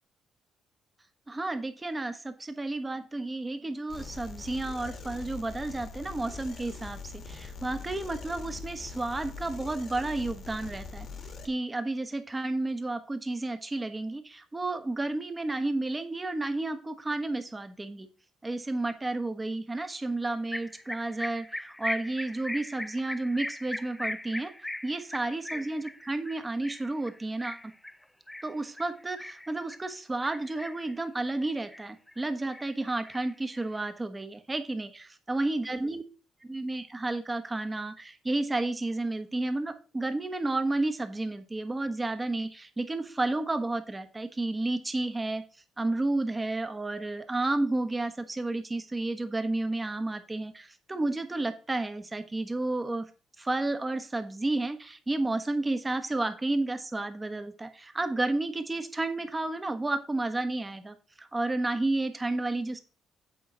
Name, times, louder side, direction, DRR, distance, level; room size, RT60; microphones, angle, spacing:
voice 1, 1.3-7.0 7.3-11.1 11.4-18.1 18.4-24.5 24.8-27.6 28.4-36.0 36.4-45.4 45.8-53.0 53.4-62.8, right 2 dB, 20° right, 9 dB, 1.2 m, -31 dB
sound 1, 3.9-11.5, left 5 dB, 55° left, 1.6 m, -42 dB
sound 2, 20.5-29.9 30.2-30.9 31.3-32.2 32.5-33.9, left 1 dB, 10° left, 0.5 m, -39 dB
8.7 x 3.8 x 6.3 m, 0.35 s
cardioid pair, 90°, 0 cm